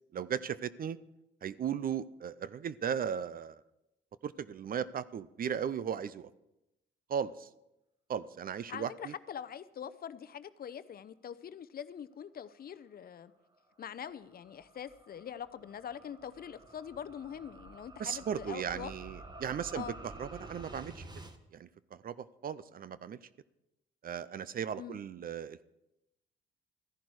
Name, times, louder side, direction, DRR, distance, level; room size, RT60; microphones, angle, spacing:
voice 1, 0.1-1.0 1.4-3.6 4.2-6.3 7.1-7.5 8.1-9.1 18.0-19.9 20.2-21.1 21.5-23.2 24.0-25.6, right 8 dB, 50° right, 17 dB, 0.5 m, -36 dB
voice 2, 8.7-13.3 13.8-18.9 19.7-20.0 24.8-25.0, left 8 dB, 50° left, 14 dB, 0.7 m, -43 dB
sound 1, 13.5-21.4, right 2 dB, 20° right, 1.2 m, -50 dB
14.5 x 10.5 x 4.8 m, 0.92 s
cardioid pair, 90°, 20 cm